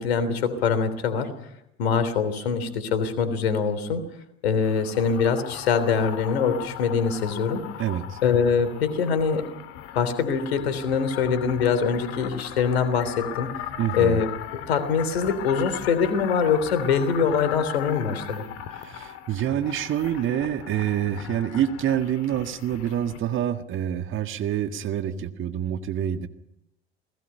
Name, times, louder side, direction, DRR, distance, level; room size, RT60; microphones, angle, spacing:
voice 1, 0.0-1.3 1.8-4.0 4.4-7.7 8.2-9.5 9.9-13.5 13.9-18.4, left 6 dB, 75° left, 13 dB, 3.3 m, -23 dB
sound 1, 4.6-23.2, left 11 dB, 50° left, 2.1 m, -38 dB
voice 2, 7.8-8.2 13.8-14.2 18.8-26.3, right 10 dB, 40° right, 8 dB, 1.7 m, -27 dB
28.5 x 20.0 x 5.7 m, 0.80 s
hypercardioid pair, 80°, 31 cm